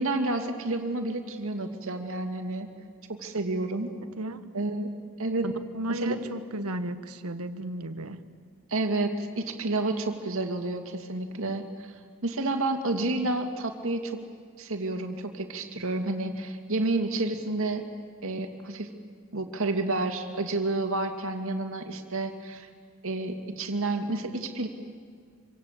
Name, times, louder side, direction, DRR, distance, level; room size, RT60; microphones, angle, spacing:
voice 1, 0.0-2.7 3.1-3.9 4.5-4.9 5.2-5.5 5.9-6.2 8.7-11.9 12.2-14.2 14.6-17.8 18.2-18.9 19.3-22.7 23.0-24.7, right 2 dB, 65° right, 5 dB, 2.5 m, -30 dB
voice 2, 3.9-4.5 5.4-8.2, right 1 dB, 80° right, 10 dB, 1.5 m, -35 dB
26.0 x 25.5 x 8.4 m, 2.1 s
head